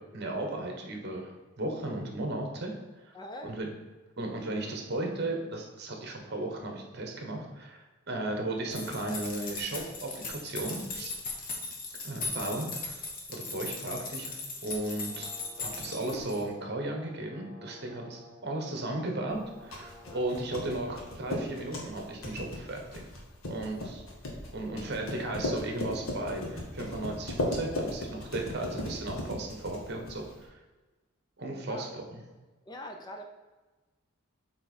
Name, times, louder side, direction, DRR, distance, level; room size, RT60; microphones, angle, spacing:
voice 1, 0.1-1.3 1.6-3.1 3.4-3.7 4.2-11.1 12.0-13.0 13.3-14.4 14.6-15.3 15.6-23.0 23.5-24.0 24.5-30.6 31.4-32.2, right 2 dB, 50° right, 2 dB, 1.2 m, -35 dB
voice 2, 3.1-3.6 20.0-20.4 23.6-23.9 24.6-25.3 31.6-31.9 32.7-33.2, equal, 20° left, 3 dB, 0.5 m, -44 dB
sound 1, 8.7-16.5, left 3 dB, 40° left, 1.2 m, -38 dB
Brass instrument, 15.0-20.8, left 2 dB, 25° right, 1.2 m, -53 dB
sound 2, 19.4-30.4, left 1 dB, 75° left, 1.4 m, -37 dB
7.8 x 3.6 x 4.2 m, 1.2 s
head